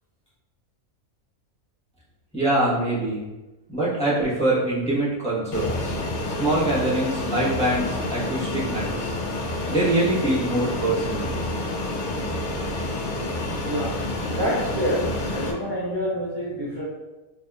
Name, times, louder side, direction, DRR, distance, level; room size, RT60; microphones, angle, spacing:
voice 1, 2.3-3.3 3.7-6.0 6.3-9.1 9.7-11.3, right 1 dB, 5° left, -10 dB, 1.0 m, -24 dB
Fixed-wing aircraft airplane, 5.5-15.5, left 2 dB, 75° left, 0.4 m, -28 dB
voice 2, 13.3-14.0 14.3-16.8, equal, 25° right, -8 dB, 0.6 m, -28 dB
4.0 x 3.5 x 2.4 m, 1.1 s
omnidirectional pair, 1.5 m